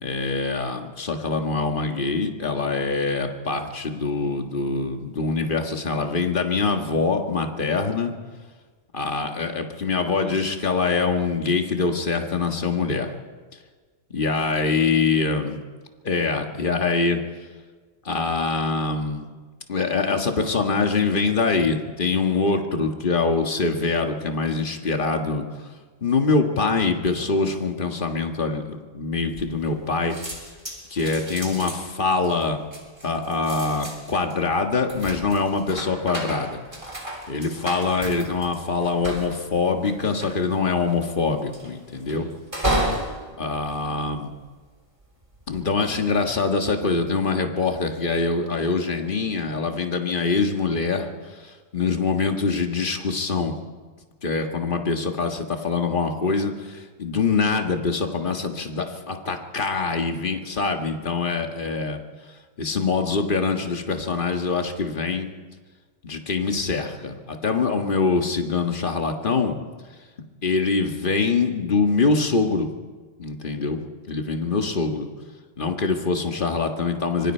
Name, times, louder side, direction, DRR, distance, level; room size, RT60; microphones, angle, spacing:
voice 1, 0.0-8.1 8.9-13.1 14.1-15.6 16.0-17.2 18.1-19.3 19.7-25.4 26.0-30.1 30.9-32.6 33.0-36.6 37.3-42.3 43.4-44.3 45.5-51.1 51.4-53.6 54.2-62.0 62.6-65.3 66.0-69.6 70.4-72.7 73.2-73.8 74.1-75.1 75.6-77.3, left 4 dB, 45° left, 4 dB, 1.8 m, -24 dB
sound 1, 29.3-29.8 30.1-44.7 45.2-45.6, right 1 dB, 25° right, 3.6 m, -33 dB
25.5 x 22.5 x 4.5 m, 1.4 s
omnidirectional pair, 1.3 m